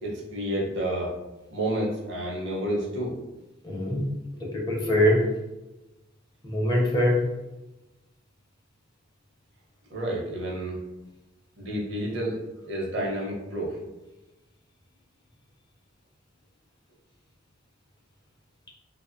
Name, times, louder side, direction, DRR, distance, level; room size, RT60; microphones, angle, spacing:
voice 1, 0.0-1.1 1.5-3.1 9.9-10.8 11.6-13.8, right 1 dB, 60° right, -2 dB, 0.7 m, -30 dB
voice 2, 3.6-4.0 4.4-5.3 6.4-7.2, left 1 dB, 20° left, -3 dB, 0.4 m, -23 dB
2.9 x 2.0 x 2.4 m, 1.0 s
head